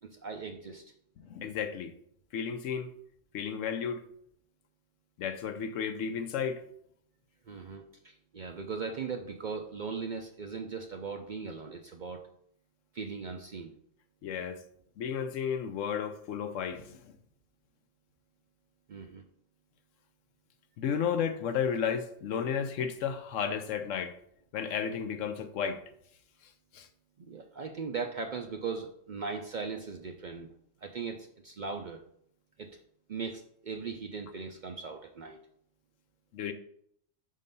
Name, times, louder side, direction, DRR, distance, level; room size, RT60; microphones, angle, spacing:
voice 1, 0.0-0.8 7.5-12.2 12.9-13.7 18.9-19.2 27.2-30.5 30.8-32.0 32.6-32.8 33.1-35.4, right 5 dB, 55° right, 0.5 m, -39 dB
voice 2, 1.2-1.9 2.3-2.9 3.3-4.0 5.2-6.6 14.2-14.6 15.0-17.1 20.8-24.2 24.5-25.8 26.7-26.9 36.3-36.5, left 7 dB, 80° left, 1.0 m, -33 dB
5.4 x 3.7 x 5.3 m
omnidirectional pair, 1.3 m